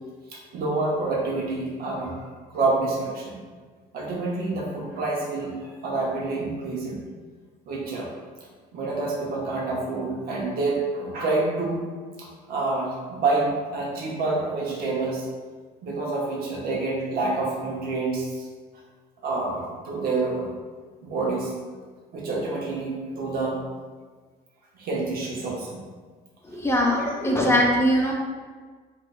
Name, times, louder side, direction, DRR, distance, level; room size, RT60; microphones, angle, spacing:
voice 1, 0.3-2.2 2.5-3.4 3.9-7.0 7.7-8.1 8.7-11.8 12.2-15.3 15.8-18.5 19.2-20.5 21.0-21.5 22.1-23.6 24.7-25.8 26.8-27.2, right 3 dB, 65° right, -3 dB, 1.0 m, -28 dB
voice 2, 26.5-28.1, equal, 15° left, -2 dB, 0.5 m, -21 dB
3.4 x 3.3 x 2.5 m, 1.5 s
cardioid pair, 110°, 17 cm